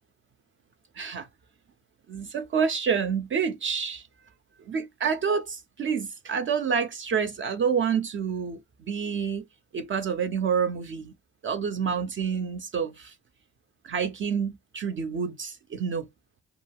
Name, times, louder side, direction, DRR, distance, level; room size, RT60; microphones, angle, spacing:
voice 1, 0.9-1.3 2.1-4.1 4.6-9.4 9.7-11.1 11.4-13.1 13.8-16.1, right 6 dB, 40° right, 0.4 m, -28 dB
2.4 x 2.2 x 3.2 m
cardioid pair, 90°, 30 cm